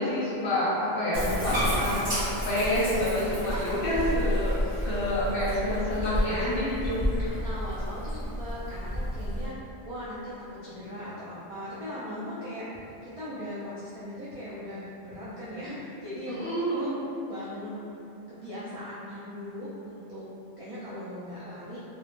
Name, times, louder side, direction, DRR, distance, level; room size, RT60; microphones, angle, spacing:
voice 1, 0.0-2.2 2.5-4.6 4.9-7.0 16.3-16.9, left 1 dB, 60° left, -9 dB, 0.9 m, -28 dB
Bathtub (filling or washing), 1.1-9.5, equal, 30° right, 0.8 m, -30 dB
voice 2, 7.4-16.9 17.3-18.0 18.3-20.3 20.6-21.8, equal, 60° right, -11 dB, 0.3 m, -39 dB
2.3 x 2.0 x 3.0 m, 2.7 s
omnidirectional pair, 1.1 m